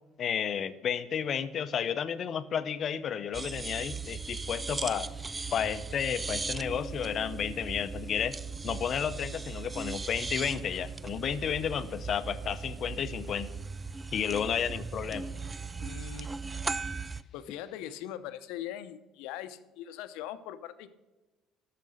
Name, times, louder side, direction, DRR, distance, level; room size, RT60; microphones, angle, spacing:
voice 1, 0.2-5.1 5.5-8.3 8.6-13.5 14.1-15.3, left 8 dB, 45° left, 13 dB, 0.6 m, -32 dB
sound 1, 3.3-17.2, right 4 dB, 15° right, 0.3 m, -38 dB
voice 2, 15.8-16.3 17.3-20.9, left 12 dB, 90° left, 11 dB, 0.7 m, -41 dB
10.5 x 6.7 x 6.4 m, 1.2 s
cardioid pair, 125°, 0 cm